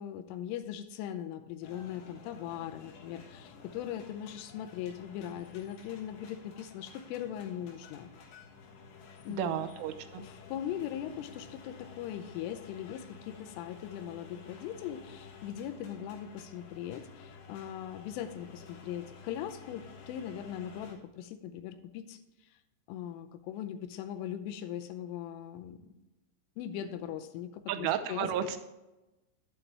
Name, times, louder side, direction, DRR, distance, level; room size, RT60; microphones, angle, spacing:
voice 1, 0.0-8.1 9.2-9.7 10.2-22.6 22.9-25.9 26.6-28.3, left 10 dB, 85° left, 9 dB, 3.1 m, -40 dB
sound 1, 1.6-21.0, left 5 dB, 65° left, 3.3 m, -52 dB
voice 2, 9.3-10.3 27.7-28.6, right 9 dB, 80° right, 9 dB, 3.1 m, -33 dB
11.0 x 8.5 x 3.3 m, 1.0 s
omnidirectional pair, 5.8 m